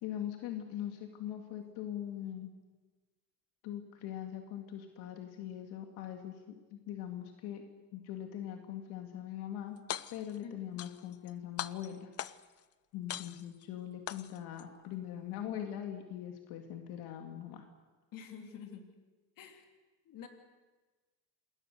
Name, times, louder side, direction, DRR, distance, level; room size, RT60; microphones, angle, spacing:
voice 1, 0.0-2.5 3.6-7.6 7.9-9.8 10.1-12.1 12.9-17.6, left 10 dB, 85° left, 4 dB, 2.3 m, -41 dB
sound 1, 9.8-10.4 10.8-11.3 11.6-12.6 13.1-13.6 14.1-14.6, left 11 dB, 40° left, 0.7 m, -41 dB
voice 2, 10.4-10.8 18.1-18.9 19.4-19.7 20.0-20.3, left 7 dB, 55° left, 4 dB, 3.4 m, -48 dB
27.5 x 21.0 x 6.7 m, 1.3 s
cardioid pair, 150°, 38 cm